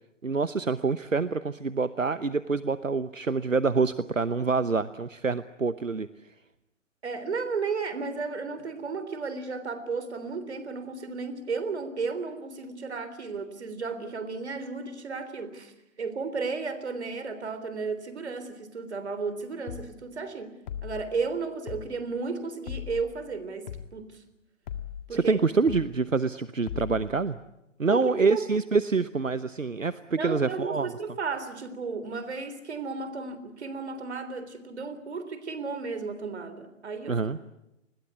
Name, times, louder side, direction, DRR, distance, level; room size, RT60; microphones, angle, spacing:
voice 1, 0.2-6.3 25.1-27.4 27.8-30.9 37.1-37.4, right 4 dB, 85° right, 15 dB, 1.0 m, -26 dB
voice 2, 7.0-15.7 16.0-20.5 20.8-24.2 25.1-25.4 27.9-28.4 30.2-37.2, right 4 dB, 60° right, 12 dB, 3.6 m, -33 dB
sound 1, 19.7-19.9 20.7-21.0 21.7-21.9 22.7-23.0 23.7-23.9 24.7-25.0 25.7-25.9 26.7-27.0, left 9 dB, 35° left, 1.8 m, -37 dB
29.5 x 21.0 x 8.4 m, 0.91 s
figure-of-eight pair, 130°, 38 cm